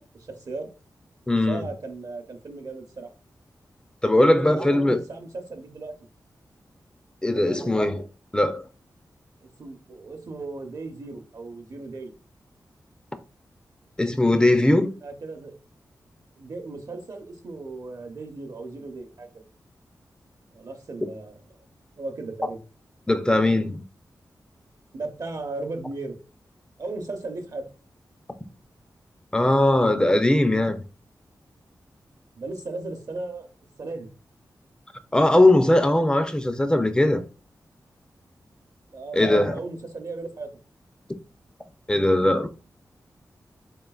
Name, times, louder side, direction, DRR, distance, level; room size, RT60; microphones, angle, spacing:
voice 1, 0.2-0.7 1.5-3.1 4.3-5.9 7.3-7.7 9.4-12.1 15.0-15.6 16.4-19.3 20.5-21.4 22.0-22.6 24.9-26.2 26.8-27.7 32.4-33.5 33.8-34.1 38.9-40.5, right 3 dB, 60° right, 0.8 m, -36 dB
voice 2, 1.3-1.6 4.0-5.0 7.2-8.0 8.3-8.6 14.0-14.9 23.1-23.8 29.3-30.8 35.1-37.2 39.1-39.6 41.9-42.5, left 1 dB, 10° left, 0.5 m, -20 dB
3.8 x 3.6 x 2.3 m
wide cardioid pair, 70°, 7 cm